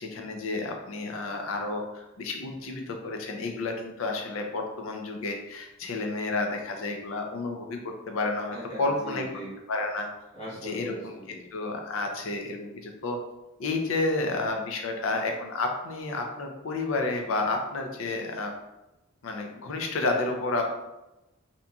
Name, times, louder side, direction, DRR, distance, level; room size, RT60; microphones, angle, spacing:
voice 1, 0.0-7.8 8.1-9.2 9.7-10.1 10.6-10.9 11.5-13.2 13.6-18.5 19.2-20.6, left 3 dB, 80° left, 3 dB, 0.5 m, -30 dB
voice 2, 8.5-9.6 10.3-11.5, equal, 35° left, -7 dB, 1.0 m, -40 dB
2.8 x 2.5 x 2.2 m, 0.96 s
head